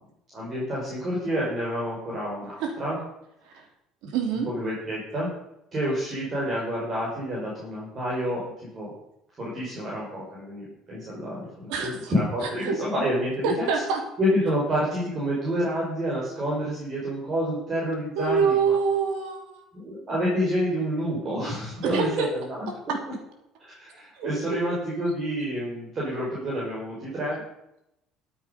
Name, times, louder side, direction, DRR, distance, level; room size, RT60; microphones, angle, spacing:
voice 1, 0.3-3.0 4.3-5.3 5.7-8.9 9.4-11.5 11.8-13.8 14.2-18.7 19.7-22.7 23.6-27.4, equal, 35° right, -5 dB, 5.5 m, -28 dB
voice 2, 4.0-4.5 11.7-12.1 12.6-12.8 13.4-14.0 18.2-19.6 21.8-22.3 24.2-24.6, right 5 dB, 80° right, 4 dB, 3.1 m, -25 dB
13.5 x 8.7 x 5.4 m, 0.80 s
cardioid pair, 120°, 0 cm